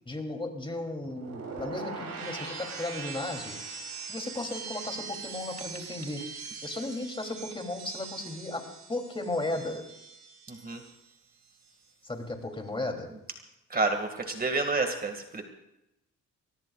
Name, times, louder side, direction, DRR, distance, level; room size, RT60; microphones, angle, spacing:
voice 1, 0.0-3.6 4.1-6.3 6.6-8.6 8.9-9.8 12.0-13.1, left 2 dB, 15° left, 2 dB, 3.2 m, -35 dB
sound 1, 1.0-11.1 11.4-11.9, right 5 dB, 65° right, 7.0 m, -42 dB
voice 2, 10.5-10.8 13.7-15.4, right 3 dB, 30° right, 4 dB, 2.2 m, -29 dB
23.0 x 19.5 x 2.5 m, 0.87 s
cardioid pair, 90°, 30 cm